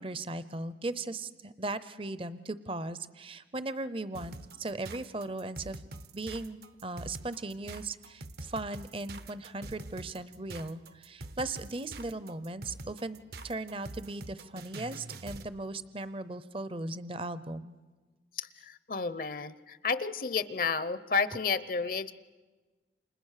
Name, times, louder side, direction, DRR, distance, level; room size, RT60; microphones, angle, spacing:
voice 1, 0.0-5.8 6.1-17.7, right 2 dB, 30° right, 14 dB, 0.7 m, -38 dB
sound 1, 4.1-15.5, right 2 dB, 60° right, 1.0 m, -45 dB
voice 2, 18.4-22.1, left 5 dB, 50° left, 14 dB, 0.8 m, -31 dB
29.5 x 27.0 x 6.6 m, 1.3 s
head